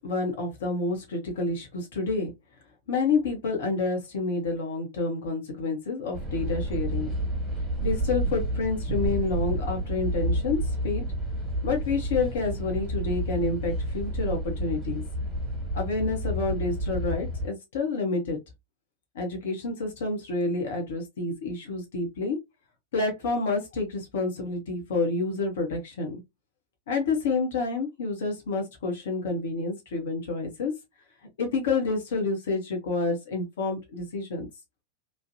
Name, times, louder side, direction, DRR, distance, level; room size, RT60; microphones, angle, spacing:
voice 1, 0.0-2.3 2.9-7.1 7.8-10.6 10.8-11.0 11.6-15.0 15.7-18.4 19.1-22.4 22.9-26.2 26.9-30.7 31.4-34.5, left 3 dB, 60° left, 1.0 m, -29 dB
sound 1, 6.1-17.5, right 1 dB, 20° right, 1.5 m, -30 dB
3.2 x 2.4 x 2.6 m
figure-of-eight pair, 90°, 0 cm